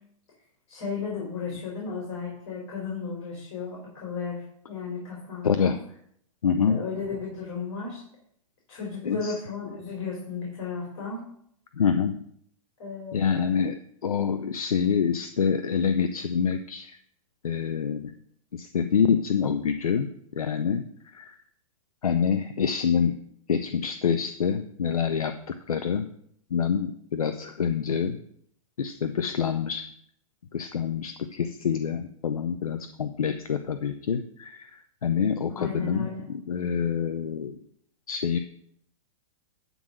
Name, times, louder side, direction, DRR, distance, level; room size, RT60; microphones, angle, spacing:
voice 1, 0.7-5.7 6.7-8.0 8.7-11.2 12.8-13.5 35.5-36.2, left 5 dB, 60° left, -3 dB, 3.7 m, -34 dB
voice 2, 5.4-5.8 6.4-6.8 9.0-9.3 11.7-12.2 13.1-17.0 17.4-18.1 18.5-20.8 21.1-21.4 22.0-23.1 23.5-26.1 26.5-28.2 28.8-29.8 30.5-36.1 36.5-37.6 38.1-38.4, left 7 dB, 90° left, 9 dB, 0.6 m, -26 dB
12.0 x 4.0 x 6.2 m, 0.69 s
hypercardioid pair, 120°, 18 cm